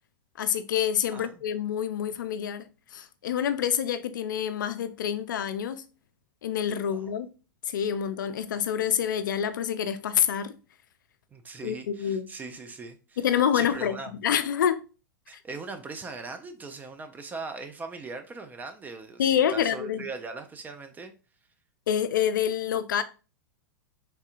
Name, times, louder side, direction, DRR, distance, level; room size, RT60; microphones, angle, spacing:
voice 1, 0.4-5.8 6.4-7.3 7.7-10.5 11.6-12.3 13.2-14.8 19.2-20.1 21.9-23.0, left 9 dB, 65° left, 0.4 m, -27 dB
voice 2, 1.1-1.4 6.9-7.1 11.3-13.2 13.5-14.1 15.3-21.1, right 3 dB, 15° right, 0.4 m, -40 dB
3.3 x 2.7 x 2.4 m
figure-of-eight pair, 95°, 11 cm